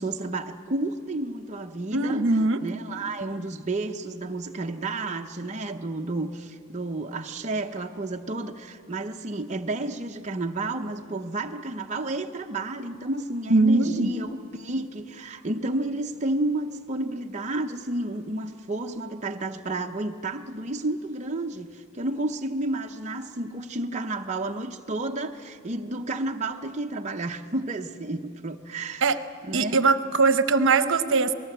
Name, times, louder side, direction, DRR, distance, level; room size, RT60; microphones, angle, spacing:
voice 1, 0.0-2.2 2.6-29.2 29.4-29.8, right 2 dB, 30° right, 3 dB, 0.7 m, -31 dB
voice 2, 1.9-2.6 13.5-14.1 29.0-29.2 29.5-31.3, right 3 dB, 55° right, 11 dB, 1.0 m, -21 dB
27.0 x 19.0 x 8.0 m, 2.6 s
head